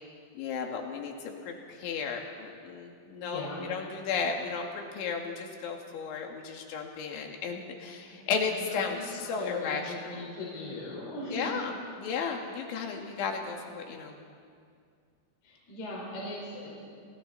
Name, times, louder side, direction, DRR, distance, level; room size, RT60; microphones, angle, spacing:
voice 1, 0.4-10.3 11.3-14.2, left 5 dB, 75° left, 2 dB, 4.4 m, -34 dB
voice 2, 3.2-3.6 8.1-8.2 8.6-9.0 9.4-11.6 15.4-16.9, left 2 dB, 55° left, -5 dB, 6.5 m, -39 dB
30.0 x 27.0 x 4.2 m, 2.3 s
omnidirectional pair, 5.5 m